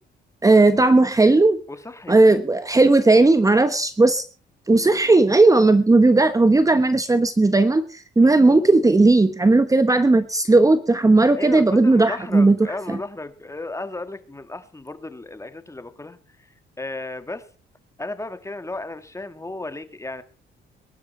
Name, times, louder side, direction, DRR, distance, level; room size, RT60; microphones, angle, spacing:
voice 1, 0.4-1.6 2.1-4.2 4.7-12.6 12.9-13.0, right 2 dB, 15° right, 11 dB, 1.1 m, -16 dB
voice 2, 1.7-2.2 4.7-4.9 8.2-8.6 11.4-16.5 16.8-17.5 18.0-20.2, left 2 dB, 15° left, 10 dB, 1.8 m, -34 dB
22.0 x 11.5 x 4.4 m, 0.38 s
cardioid pair, 90°, 20 cm